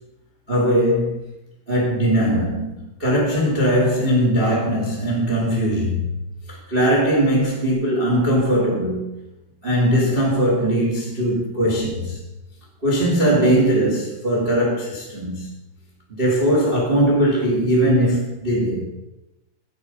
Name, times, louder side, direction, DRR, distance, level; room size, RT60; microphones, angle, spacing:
voice 1, 0.5-1.3 1.7-6.1 6.5-9.2 9.6-12.2 12.8-15.5 16.1-18.9, equal, 30° right, 0.9 m, -20 dB
9.5 x 9.0 x 5.4 m
omnidirectional pair, 5.5 m